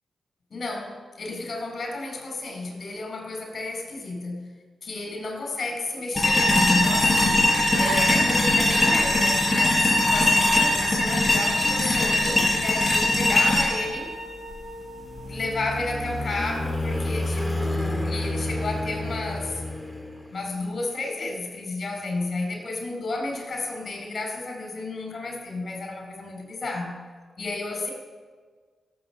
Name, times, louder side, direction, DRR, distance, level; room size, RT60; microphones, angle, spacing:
voice 1, 0.5-4.5 4.8-14.1 15.2-19.6 20.3-26.9 27.4-27.9, left 2 dB, 55° left, 3 dB, 4.5 m, -32 dB
sound 1, 6.1-15.2, left 1 dB, 20° left, 5.3 m, -21 dB
sound 2, 14.9-20.6, left 1 dB, 5° left, 2.0 m, -30 dB
16.5 x 7.9 x 6.9 m, 1.5 s
supercardioid pair, 45°, 0 cm